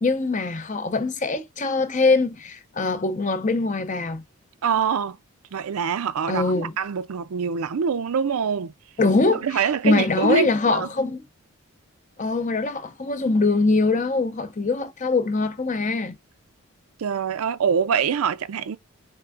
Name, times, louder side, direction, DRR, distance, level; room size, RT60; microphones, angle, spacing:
voice 1, 0.0-4.2 6.3-6.7 9.0-11.2 12.2-16.2, left 3 dB, 35° left, 0.6 m, -23 dB
voice 2, 4.6-5.2 5.5-8.7 9.4-10.9 17.0-18.8, right 6 dB, 75° right, 0.4 m, -24 dB
4.5 x 3.3 x 2.4 m
head